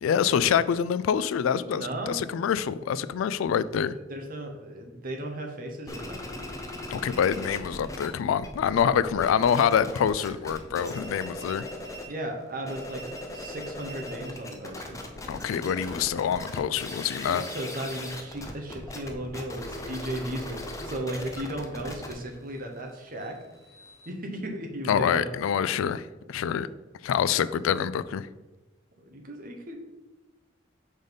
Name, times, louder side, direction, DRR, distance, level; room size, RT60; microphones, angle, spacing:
voice 1, 0.0-4.0 6.9-11.7 15.3-17.4 24.9-26.7 27.0-28.3, left 8 dB, 85° left, 16 dB, 0.3 m, -26 dB
voice 2, 1.7-2.2 4.1-6.4 12.1-13.0 13.3-15.0 17.2-23.4 24.1-25.3 29.1-29.8, right 1 dB, 45° right, 2 dB, 1.0 m, -35 dB
sound 1, 5.9-8.1 8.3-12.2 12.5-24.1, left 1 dB, 15° left, 0.6 m, -39 dB
5.1 x 5.1 x 4.0 m, 1.1 s
head